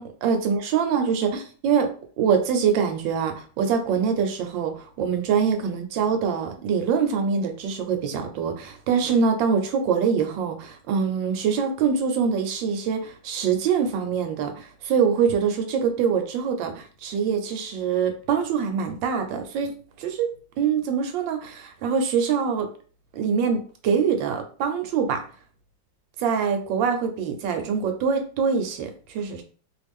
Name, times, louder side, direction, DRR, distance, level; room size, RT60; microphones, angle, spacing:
voice 1, 0.0-20.3 20.6-22.7 23.1-25.2 26.2-29.4, right 6 dB, 75° right, 6 dB, 1.3 m, -24 dB
3.1 x 2.3 x 3.4 m, 0.41 s
omnidirectional pair, 2.1 m